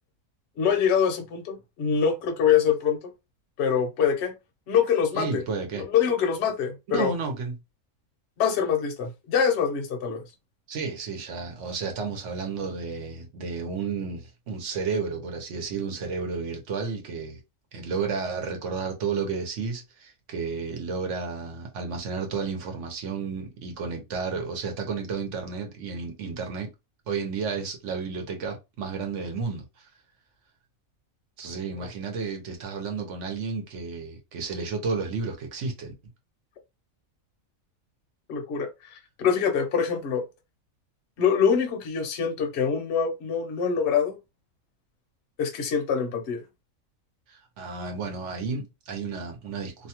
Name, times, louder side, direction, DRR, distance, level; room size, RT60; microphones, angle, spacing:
voice 1, 0.6-3.0 3.6-4.3 4.7-5.4 5.7-7.1 8.4-10.2 31.8-31.9 38.3-40.2 41.2-44.2 45.4-46.4, left 7 dB, 60° left, 0.9 m, -24 dB
voice 2, 5.1-5.8 6.9-7.6 10.7-17.4 17.7-26.7 27.1-29.9 31.4-35.9 47.3-49.9, right 5 dB, 65° right, 1.0 m, -32 dB
2.7 x 2.2 x 2.9 m
omnidirectional pair, 1.5 m